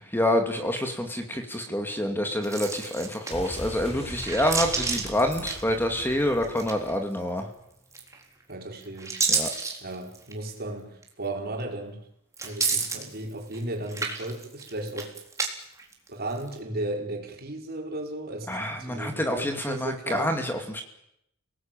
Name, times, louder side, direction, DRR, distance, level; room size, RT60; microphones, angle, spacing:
voice 1, 0.0-7.5 9.3-9.5 18.5-20.8, left 1 dB, 10° left, 5 dB, 2.6 m, -27 dB
sound 1, 2.4-3.7 4.1-6.1 6.4-7.1 7.9-8.4 8.8-10.4 11.0-11.1 12.3-13.6 13.9-15.5 15.8-16.5, right 4 dB, 15° right, 3.9 m, -30 dB
sound 2, 3.3-7.1 7.3-7.4, left 1 dB, 30° left, 4.9 m, -41 dB
voice 2, 8.5-9.2 9.8-12.0 12.4-15.1 16.1-20.4, right 1 dB, 45° right, 2 dB, 5.1 m, -35 dB
29.5 x 19.0 x 9.2 m, 0.79 s
head